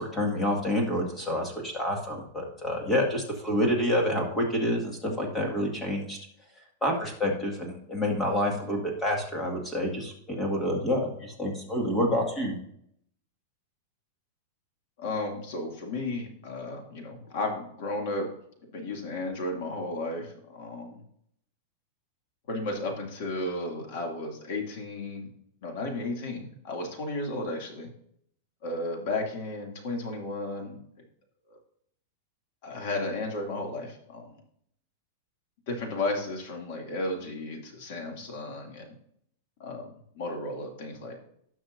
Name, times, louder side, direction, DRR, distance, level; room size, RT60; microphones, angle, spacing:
voice 1, 0.0-6.2 6.8-12.6, left 1 dB, 10° left, 0 dB, 2.0 m, -28 dB
voice 2, 15.0-18.3 18.7-21.0 22.5-25.3 25.6-27.9 28.6-30.8 31.5-31.6 32.6-34.4 35.7-38.9 39.6-41.2, left 2 dB, 50° left, 2 dB, 2.5 m, -34 dB
17.5 x 6.0 x 2.6 m, 0.70 s
supercardioid pair, 170°, 0 cm